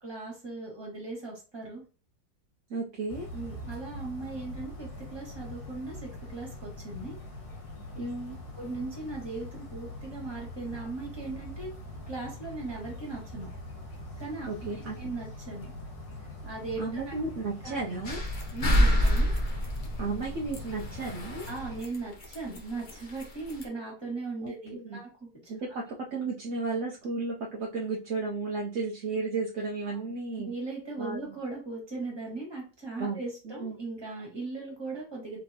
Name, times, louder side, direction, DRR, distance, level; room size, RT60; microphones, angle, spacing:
voice 1, 0.0-1.8 3.3-7.2 8.6-11.7 12.1-13.5 14.2-15.7 16.4-17.1 17.6-17.7 18.5-19.3 21.5-25.5 29.9-30.0 30.4-35.4, right 3 dB, 15° right, -2 dB, 1.5 m, -38 dB
voice 2, 2.7-3.3 8.0-8.4 14.5-15.0 16.8-18.2 20.0-21.5 24.4-25.0 25.5-25.8 26.1-30.5 31.0-31.3 33.0-33.2 33.4-33.8, right 3 dB, 65° right, -3 dB, 0.7 m, -33 dB
sound 1, 3.1-21.8, left 1 dB, 80° left, 2.0 m, -43 dB
sound 2, 18.0-21.6 21.8-22.0 22.2-23.2 23.5-23.6, equal, 55° left, 0.5 m, -27 dB
4.0 x 3.4 x 2.8 m, 0.34 s
omnidirectional pair, 2.0 m